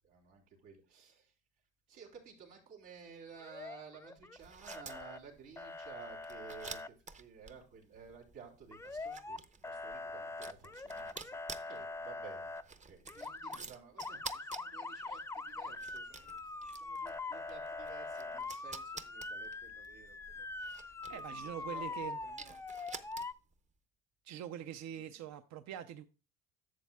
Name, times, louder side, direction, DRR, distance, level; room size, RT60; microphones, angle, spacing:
voice 1, 0.0-1.3 1.9-9.4 9.6-12.5 12.8-21.4 21.7-22.9 24.9-25.2, right 6 dB, 90° right, -2 dB, 3.4 m, -55 dB
Motor vehicle (road) / Siren, 3.4-4.4 4.7-5.2 5.6-6.9 8.7-9.4 9.6-12.6 13.1-13.6 14.0-23.3, left 3 dB, 10° left, 0.3 m, -43 dB
sound 1, 4.4-23.6, right 4 dB, 25° right, 0.6 m, -51 dB
voice 2, 21.1-22.2 24.2-26.1, right 10 dB, 60° right, 10 dB, 0.6 m, -44 dB
11.5 x 7.3 x 2.3 m, 0.32 s
supercardioid pair, 90°, 32 cm